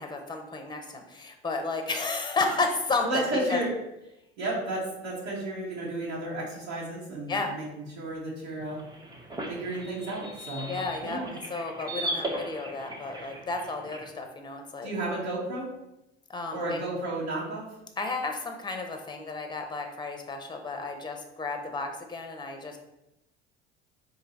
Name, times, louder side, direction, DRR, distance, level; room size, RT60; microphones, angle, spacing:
voice 1, 0.0-3.2 3.5-3.6 7.3-7.5 10.7-14.9 16.3-16.8 18.0-22.8, left 3 dB, 15° left, 4 dB, 0.8 m, -32 dB
voice 2, 3.0-3.7 4.4-8.8 9.5-10.7 11.0-11.3 14.8-15.7 16.5-17.6, right 1 dB, 75° right, -8 dB, 1.4 m, -32 dB
sound 1, 8.6-14.1, right 1 dB, 15° right, 0.8 m, -38 dB
4.5 x 2.8 x 4.0 m, 0.90 s
hypercardioid pair, 65°, 31 cm